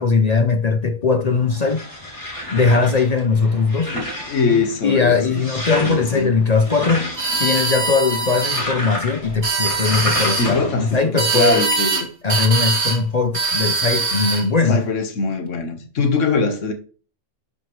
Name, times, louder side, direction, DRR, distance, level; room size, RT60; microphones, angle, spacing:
voice 1, 0.0-1.8 2.5-3.9 4.8-7.1 7.4-11.7 12.2-14.8, left 4 dB, 50° left, 0.5 m, -19 dB
sound 1, 1.3-11.0, left 1 dB, 25° left, 2.2 m, -30 dB
voice 2, 3.9-5.4 5.8-6.3 10.4-12.1 14.7-16.7, left 3 dB, 70° left, 1.5 m, -22 dB
sound 2, 7.2-8.6 9.3-10.5 11.2-12.0 12.3-13.0 13.3-14.5, right 3 dB, 70° right, 1.9 m, -22 dB
11.0 x 5.4 x 3.1 m
omnidirectional pair, 1.3 m